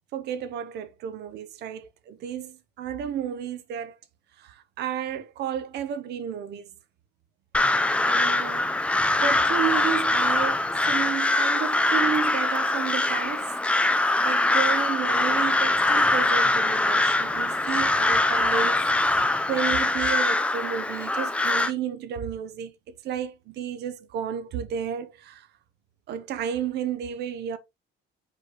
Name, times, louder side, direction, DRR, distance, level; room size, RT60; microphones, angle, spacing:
voice 1, 0.1-4.0 4.4-6.7 8.1-8.7 9.2-13.5 13.9-22.7 23.0-25.5 26.1-27.6, right 8 dB, 55° right, 0.8 m, -32 dB
Crow, 7.5-21.7, left 2 dB, 5° left, 0.4 m, -23 dB
6.2 x 5.1 x 3.0 m
cardioid pair, 170°, 20 cm